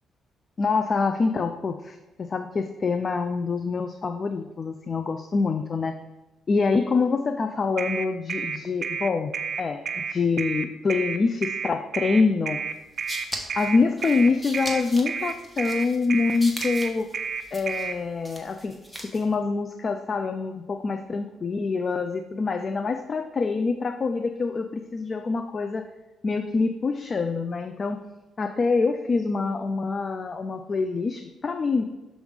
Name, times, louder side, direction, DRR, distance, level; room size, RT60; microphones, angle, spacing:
voice 1, 0.6-6.0 6.5-9.3 9.6-12.6 13.5-17.1 17.5-18.8 19.1-25.9 26.2-28.0 28.4-31.8, left 4 dB, 40° left, 7 dB, 0.3 m, -25 dB
sound 1, 7.8-18.0, right 6 dB, 50° right, 0.4 m, -30 dB
sound 2, 12.7-19.3, equal, 10° left, 1.0 m, -39 dB
6.1 x 3.2 x 5.0 m, 1.0 s
cardioid pair, 90°, 0 cm